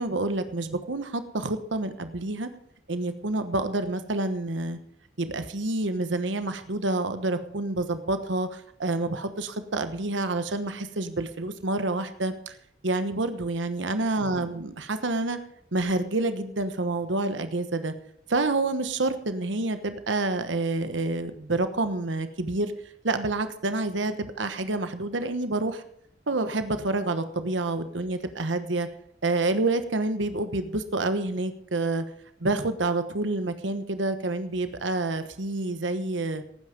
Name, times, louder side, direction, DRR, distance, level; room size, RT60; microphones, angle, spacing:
voice 1, 0.0-2.5 2.9-4.8 5.2-12.6 12.8-15.4 15.7-17.9 18.3-22.7 23.0-25.8 26.3-28.9 29.2-32.0 32.4-36.4, right 2 dB, 85° right, 10 dB, 1.1 m, -28 dB
17.5 x 9.5 x 5.2 m, 0.69 s
head